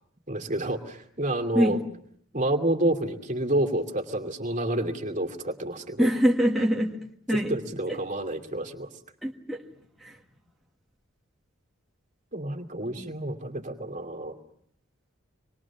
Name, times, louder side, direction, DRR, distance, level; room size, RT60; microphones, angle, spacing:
voice 1, 0.3-1.8 2.3-6.1 7.3-8.9 12.3-14.4, right 1 dB, 35° right, 3 dB, 2.5 m, -29 dB
voice 2, 6.0-7.0 7.3-7.6 7.9-8.0 9.2-9.6 10.0-10.2 13.0-13.1, equal, ahead, -2 dB, 1.6 m, -24 dB
26.5 x 21.5 x 7.3 m, 0.66 s
head